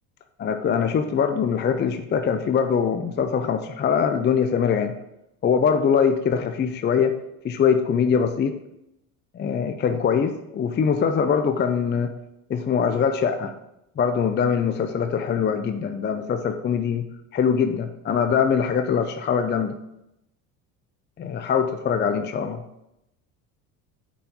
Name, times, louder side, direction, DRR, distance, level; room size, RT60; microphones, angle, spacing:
voice 1, 0.4-4.9 5.4-7.2 7.4-8.5 9.3-12.1 12.5-13.5 14.0-17.0 17.3-19.7 21.2-22.6, left 7 dB, 25° left, 7 dB, 0.5 m, -22 dB
7.0 x 4.6 x 4.0 m, 0.86 s
hypercardioid pair, 70°, 44 cm